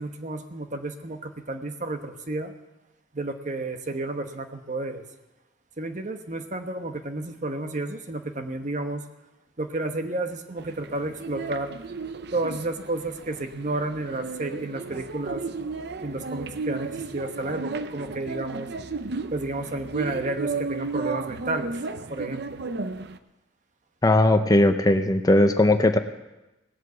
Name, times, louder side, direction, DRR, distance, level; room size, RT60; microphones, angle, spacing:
voice 1, 0.0-2.5 3.1-5.0 5.8-9.1 9.6-11.7 12.3-15.4 16.0-18.7 19.3-21.7 22.1-22.6, right 2 dB, 45° right, 7 dB, 1.1 m, -31 dB
sound 1, 10.6-23.2, right 4 dB, 65° right, 0.7 m, -34 dB
voice 2, 24.0-26.0, left 1 dB, 20° left, 8 dB, 0.7 m, -18 dB
17.5 x 8.1 x 7.9 m, 1.0 s
head